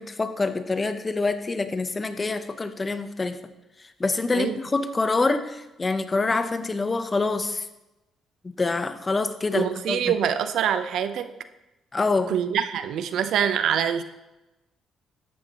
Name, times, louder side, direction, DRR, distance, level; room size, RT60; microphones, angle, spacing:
voice 1, 0.0-3.4 3.8-7.7 8.4-10.1 11.9-12.3, left 3 dB, 25° left, 10 dB, 0.8 m, -26 dB
voice 2, 9.5-11.3 12.3-14.0, right 8 dB, 75° right, 11 dB, 0.6 m, -25 dB
13.5 x 9.0 x 3.0 m, 0.99 s
cardioid pair, 90°, 0 cm